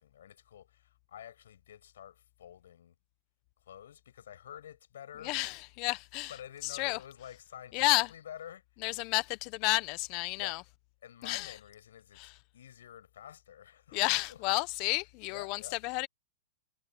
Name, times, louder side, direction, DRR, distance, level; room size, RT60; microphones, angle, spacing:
voice 1, 0.0-3.0 3.6-5.4 6.3-8.9 10.3-10.6 11.0-14.7 14.9-15.8, left 10 dB, 80° left, 7.0 m, -50 dB
voice 2, 5.2-6.3 6.6-7.0 7.7-8.1 8.8-10.6 11.2-11.5 12.2-12.3 13.9-16.1, left 23 dB, 40° left, 1.1 m, -31 dB
hypercardioid pair, 150°, 0 cm